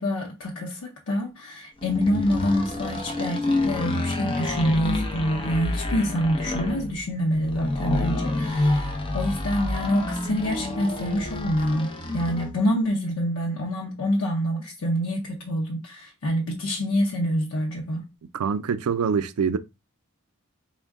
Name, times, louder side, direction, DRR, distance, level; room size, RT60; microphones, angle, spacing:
voice 1, 0.0-18.1, equal, 90° left, 0.7 m, -26 dB
sound 1, 1.8-12.6, left 2 dB, 25° left, 0.6 m, -28 dB
voice 2, 18.3-19.6, right 6 dB, 80° right, 0.4 m, -24 dB
4.3 x 2.1 x 3.5 m
head